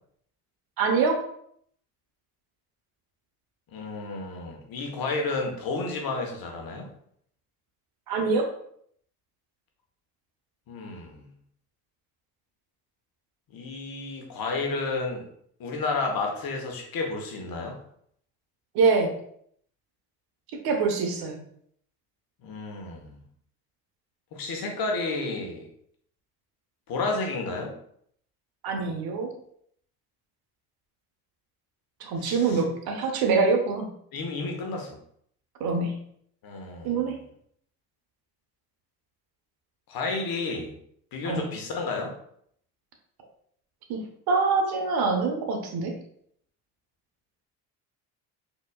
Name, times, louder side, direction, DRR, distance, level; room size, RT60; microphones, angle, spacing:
voice 1, 0.8-1.2 8.1-8.5 18.7-19.1 20.5-21.4 28.6-29.3 32.0-33.9 35.6-36.0 36.8-37.2 41.3-41.5 43.9-46.0, right 4 dB, 55° right, 4 dB, 0.9 m, -25 dB
voice 2, 3.7-6.9 10.7-11.2 13.5-15.3 15.6-17.7 22.4-23.2 24.3-25.7 26.9-27.7 32.2-32.6 34.1-35.0 36.4-37.1 39.9-40.8 41.1-42.1, left 3 dB, 50° left, 2 dB, 1.1 m, -31 dB
4.2 x 3.0 x 2.2 m, 0.66 s
hypercardioid pair, 60°, 45 cm